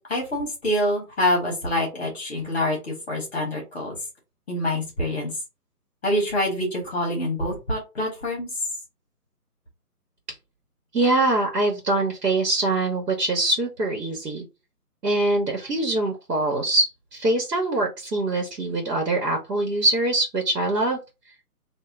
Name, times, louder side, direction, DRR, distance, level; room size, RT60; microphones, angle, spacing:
voice 1, 0.1-3.9 4.5-5.3 6.0-8.5, left 1 dB, 10° left, -1 dB, 1.3 m, -26 dB
voice 2, 10.9-14.4 15.0-21.0, right 2 dB, 85° right, 2 dB, 1.5 m, -23 dB
3.4 x 2.7 x 3.8 m, 0.26 s
hypercardioid pair, 175°, 47 cm